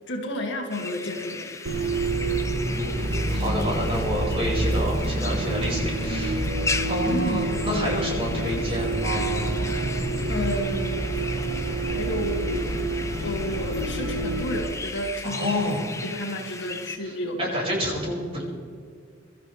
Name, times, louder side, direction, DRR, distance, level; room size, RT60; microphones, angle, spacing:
voice 1, 0.1-1.6 7.0-7.7 10.3-11.3 11.9-12.8 13.2-15.7 16.0-17.5, left 1 dB, 60° left, 2 dB, 1.9 m, -31 dB
sound 1, 0.7-17.0, left 4 dB, 15° left, 0.7 m, -36 dB
Bus, 1.7-14.6, right 2 dB, 75° right, 1.5 m, -27 dB
voice 2, 2.6-6.4 6.8-9.6 15.2-15.9 17.0-17.1 17.4-18.4, equal, 30° right, -3 dB, 4.9 m, -28 dB
24.0 x 13.5 x 3.2 m, 2.1 s
head